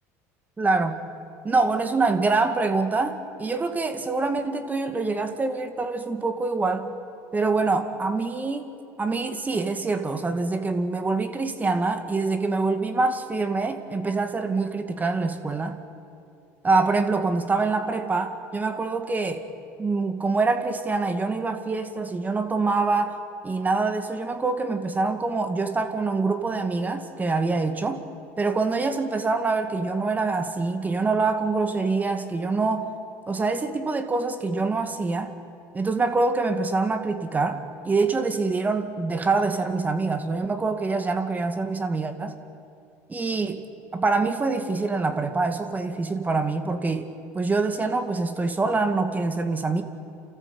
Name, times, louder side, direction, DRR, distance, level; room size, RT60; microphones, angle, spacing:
voice 1, 0.6-1.0 1.4-7.0 7.3-8.7 9.0-15.8 16.6-19.5 19.8-23.2 23.4-28.0 28.4-32.9 33.3-35.3 35.7-42.4 43.1-43.6 43.9-47.1 47.3-49.8, right 3 dB, 20° right, 7 dB, 2.1 m, -25 dB
29.5 x 14.0 x 8.5 m, 2.5 s
hypercardioid pair, 80°, 8 cm